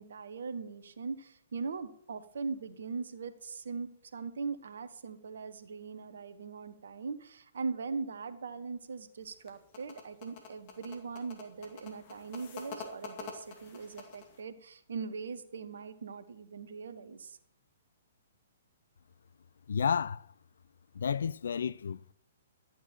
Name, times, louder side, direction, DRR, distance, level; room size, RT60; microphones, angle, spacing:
voice 1, 0.0-17.4, right 4 dB, 70° right, 1.1 m, -40 dB
sound 1, 9.2-14.4, left 5 dB, 40° left, 2.3 m, -47 dB
voice 2, 19.7-20.3 20.9-22.0, left 7 dB, 70° left, 0.4 m, -31 dB
12.5 x 9.3 x 4.4 m
figure-of-eight pair, 120°, 0 cm